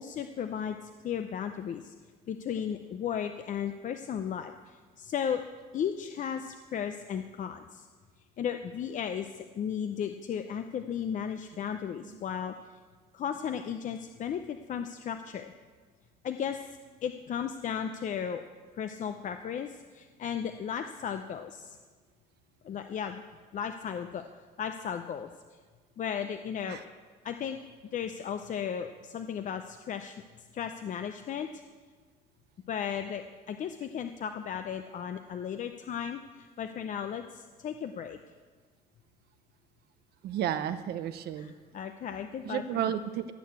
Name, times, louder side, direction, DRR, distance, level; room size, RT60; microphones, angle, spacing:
voice 1, 0.0-1.9 2.3-5.4 5.7-7.9 8.4-12.5 13.1-15.5 16.2-16.6 17.0-18.4 18.8-21.8 22.6-23.2 23.5-24.3 24.6-25.3 26.0-26.8 27.2-27.6 27.9-30.1 30.5-31.5 32.7-38.2 41.4-42.8, left 8 dB, 50° left, 8 dB, 0.6 m, -35 dB
voice 2, 40.2-41.5 42.4-43.3, right 10 dB, 70° right, 10 dB, 0.7 m, -32 dB
16.0 x 6.7 x 8.2 m, 1.5 s
cardioid pair, 110°, 17 cm